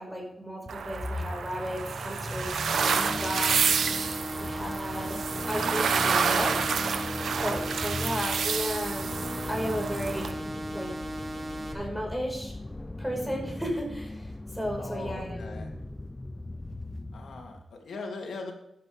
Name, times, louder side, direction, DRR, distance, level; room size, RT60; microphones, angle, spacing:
voice 1, 0.0-3.0 3.2-3.6 4.0-5.2 5.5-6.6 7.1-10.4 10.7-10.9 11.7-12.5 13.0-15.4, equal, ahead, 0 dB, 5.3 m, -34 dB
sound 1, 0.7-17.5, left 2 dB, 20° left, 0.6 m, -38 dB
sound 2, 0.7-10.3, right 6 dB, 85° right, 1.1 m, -29 dB
sound 3, 2.7-11.7, right 1 dB, 30° right, 2.7 m, -37 dB
voice 2, 14.8-15.7 17.1-18.5, left 3 dB, 80° left, 1 dB, 2.9 m, -40 dB
14.5 x 11.0 x 3.6 m, 0.79 s
wide cardioid pair, 100°, 0 cm